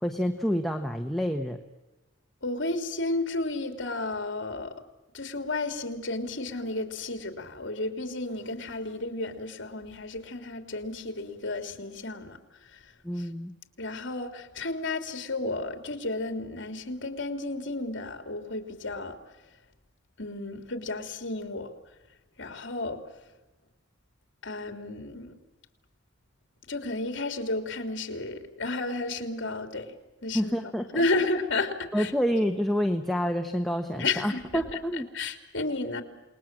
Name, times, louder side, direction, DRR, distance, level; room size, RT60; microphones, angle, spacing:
voice 1, 0.0-1.6 13.0-13.5 30.3-31.2 31.9-35.1, equal, ahead, 4 dB, 1.3 m, -28 dB
voice 2, 2.4-4.7 5.1-12.8 13.2-13.3 13.8-19.2 20.2-21.7 22.4-23.0 24.4-25.3 26.7-29.9 30.2-30.6 30.9-32.1 33.9-34.8 35.1-36.0, left 2 dB, 65° left, 6 dB, 3.4 m, -32 dB
29.0 x 20.5 x 7.6 m, 1.1 s
head